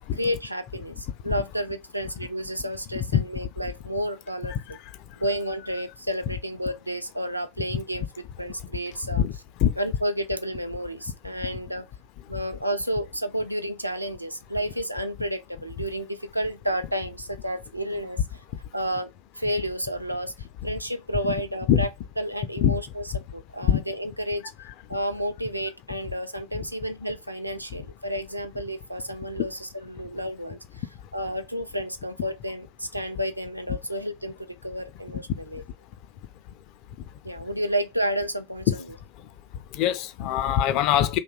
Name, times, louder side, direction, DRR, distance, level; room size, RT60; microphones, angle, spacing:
voice 1, 0.1-4.5 5.2-9.2 9.8-11.9 12.3-18.2 18.7-19.1 19.4-20.3 20.6-21.9 22.2-23.0 23.3-24.4 24.9-30.6 31.1-35.6 37.2-38.8, equal, 90° right, 0.5 m, -31 dB
voice 2, 39.7-41.2, left 10 dB, 40° left, 0.4 m, -22 dB
2.7 x 2.2 x 3.7 m
figure-of-eight pair, 90°, 0 cm